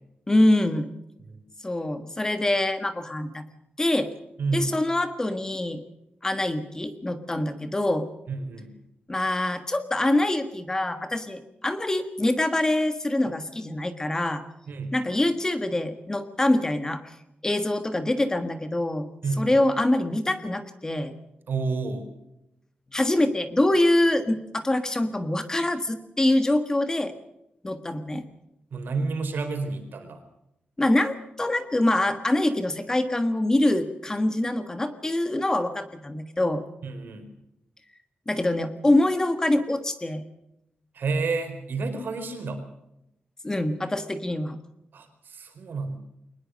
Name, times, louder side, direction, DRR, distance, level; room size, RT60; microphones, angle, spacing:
voice 1, 0.3-0.9 1.6-3.4 3.8-4.1 4.5-5.8 6.2-8.1 9.1-14.4 14.9-17.0 17.4-19.1 19.4-21.1 22.9-27.1 27.6-28.2 30.8-36.6 38.3-40.2 43.4-44.6, left 1 dB, 15° left, 9 dB, 1.5 m, -24 dB
voice 2, 8.3-8.7 14.7-14.9 19.2-19.6 21.5-22.1 28.7-30.2 36.8-37.3 40.9-42.6 44.9-46.0, right 4 dB, 70° right, 7 dB, 4.5 m, -30 dB
22.5 x 20.0 x 6.5 m, 0.84 s
wide cardioid pair, 160°, 4 cm